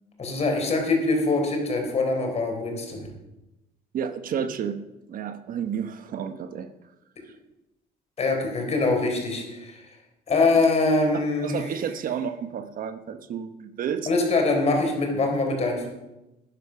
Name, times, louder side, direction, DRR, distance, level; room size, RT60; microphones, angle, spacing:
voice 1, 0.2-3.1 8.2-9.9 10.3-11.5 14.1-15.9, left 3 dB, 40° left, 3 dB, 4.0 m, -23 dB
voice 2, 3.9-4.8 5.1-6.7 7.2-7.3 11.1-14.1, right 8 dB, 55° right, 9 dB, 1.0 m, -31 dB
12.5 x 9.9 x 5.8 m, 0.97 s
cardioid pair, 110°, 17 cm